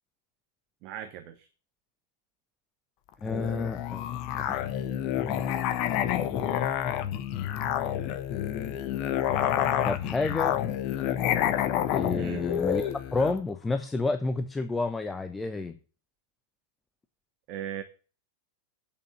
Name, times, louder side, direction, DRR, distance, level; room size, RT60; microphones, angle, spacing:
voice 1, 0.8-1.5 12.1-12.4 17.5-17.8, right 10 dB, 40° right, 8 dB, 1.1 m, -38 dB
Musical instrument, 3.2-13.4, left 11 dB, 40° left, 1.1 m, -29 dB
voice 2, 3.2-4.1 4.3-4.6 5.1-5.5 6.3-6.6 9.8-10.6 11.9-15.8, left 3 dB, 10° left, 9 dB, 0.9 m, -30 dB
8.8 x 6.7 x 6.9 m, 0.38 s
figure-of-eight pair, 90°, 0 cm